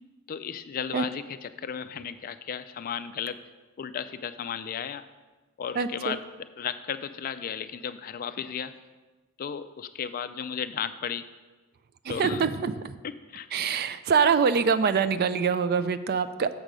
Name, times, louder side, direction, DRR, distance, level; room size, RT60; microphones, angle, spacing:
voice 1, 0.3-3.4 3.8-5.0 5.6-6.2 6.6-8.7 9.4-11.3 12.1-12.5 13.0-13.5, left 7 dB, 40° left, 12 dB, 0.3 m, -34 dB
voice 2, 5.8-6.2 12.1-12.9 13.5-16.5, right 6 dB, 45° right, 13 dB, 0.3 m, -24 dB
7.4 x 5.2 x 6.1 m, 1.2 s
head